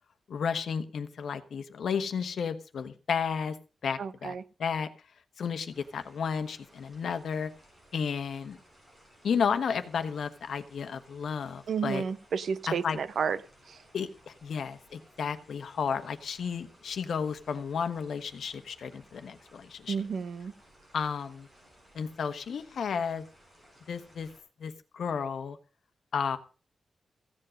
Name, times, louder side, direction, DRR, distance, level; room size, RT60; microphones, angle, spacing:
voice 1, 0.3-3.6 3.8-4.9 5.4-7.5 7.9-8.6 9.2-12.1 12.8-13.0 13.9-20.0 20.9-21.5 21.9-23.2 23.9-24.3 24.6-25.6 26.1-26.4, left 6 dB, 70° left, 9 dB, 1.2 m, -32 dB
voice 2, 4.0-4.4 11.7-13.4 13.7-13.8 19.9-20.5, right 6 dB, 65° right, 15 dB, 0.7 m, -31 dB
sound 1, 5.7-24.4, equal, 20° right, 5.2 m, -60 dB
15.5 x 7.6 x 6.4 m, 0.35 s
wide cardioid pair, 175°, 0 cm